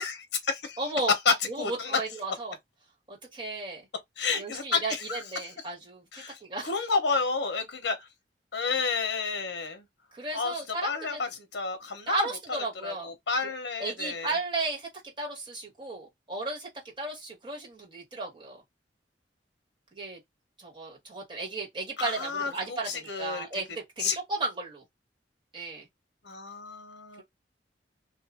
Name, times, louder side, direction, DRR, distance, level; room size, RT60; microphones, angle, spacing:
voice 1, 0.0-0.8 1.2-2.0 4.2-5.2 6.1-8.1 8.5-9.8 10.3-10.5 10.8-12.6 12.8-14.3 22.0-23.6 24.0-24.2 26.2-27.2, left 4 dB, 75° left, 0.8 m, -30 dB
voice 2, 0.8-1.1 1.5-2.6 3.1-3.9 4.4-6.7 10.1-11.3 12.1-13.1 13.4-13.5 13.8-14.9 15.2-16.7 17.0-18.6 20.0-20.2 20.6-24.8 25.5-25.9, right 2 dB, 30° right, 1.6 m, -34 dB
2.6 x 2.5 x 3.5 m
head